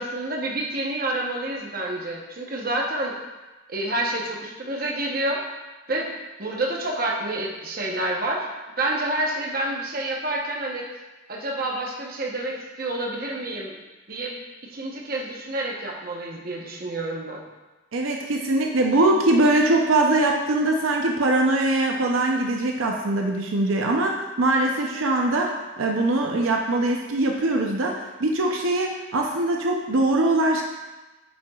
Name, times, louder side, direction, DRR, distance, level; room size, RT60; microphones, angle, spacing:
voice 1, 0.0-3.1 3.7-5.4 5.9-6.1 6.4-8.5 8.8-10.8 11.3-13.8 14.1-14.3 14.6-17.4, right 1 dB, 45° right, -1 dB, 0.9 m, -28 dB
voice 2, 17.9-30.6, right 2 dB, 85° right, 1 dB, 0.6 m, -22 dB
8.7 x 5.8 x 2.4 m, 1.2 s
head